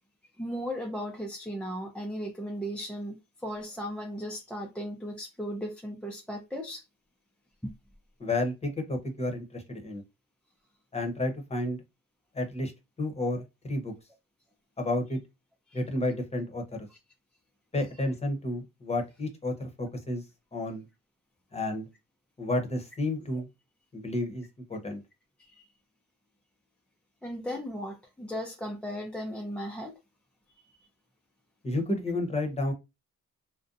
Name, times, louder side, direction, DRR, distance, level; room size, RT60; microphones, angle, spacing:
voice 1, 0.4-3.2 3.4-6.8 7.6-7.7 15.7-15.8 25.5-25.6 27.2-30.0, equal, 5° left, 0.4 m, -36 dB
voice 2, 8.2-10.0 10.9-11.8 12.3-12.7 13.0-13.9 14.8-15.2 15.7-16.9 17.7-20.2 20.5-20.8 21.5-21.8 22.4-23.5 23.9-24.4 24.7-25.0 31.6-32.7, left 1 dB, 20° left, 0.8 m, -31 dB
2.6 x 2.1 x 2.5 m
cardioid pair, 90°, 33 cm